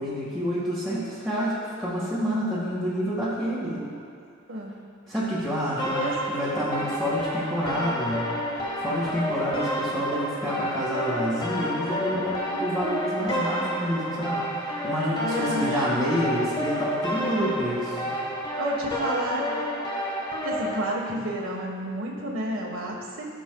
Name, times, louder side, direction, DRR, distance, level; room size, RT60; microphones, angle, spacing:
voice 1, 0.0-3.8 5.1-8.3 8.8-18.1, equal, ahead, -11 dB, 1.7 m, -28 dB
voice 2, 3.7-4.0 4.5-4.7 5.9-6.9 12.5-13.1 15.2-16.0 18.6-19.4 20.4-23.3, right 1 dB, 90° right, -1 dB, 1.5 m, -31 dB
sound 1, 5.8-20.8, left 1 dB, 25° left, 1.1 m, -30 dB
17.0 x 6.2 x 2.3 m, 2.4 s
head